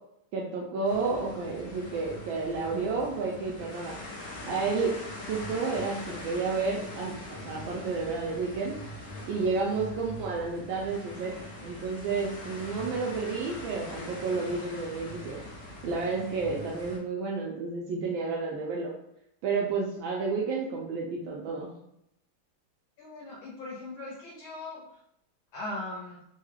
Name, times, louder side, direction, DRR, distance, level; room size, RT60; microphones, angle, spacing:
voice 1, 0.3-4.0 4.5-4.9 5.3-8.8 9.3-11.3 11.6-15.4 15.8-18.9 19.4-21.7, right 4 dB, 75° right, -3 dB, 1.2 m, -31 dB
sound 1, 0.8-17.0, left 1 dB, 50° left, 0.7 m, -42 dB
voice 2, 23.0-24.8 25.5-26.2, left 2 dB, 70° left, -5 dB, 1.3 m, -39 dB
3.5 x 2.3 x 3.2 m, 0.78 s
omnidirectional pair, 2.4 m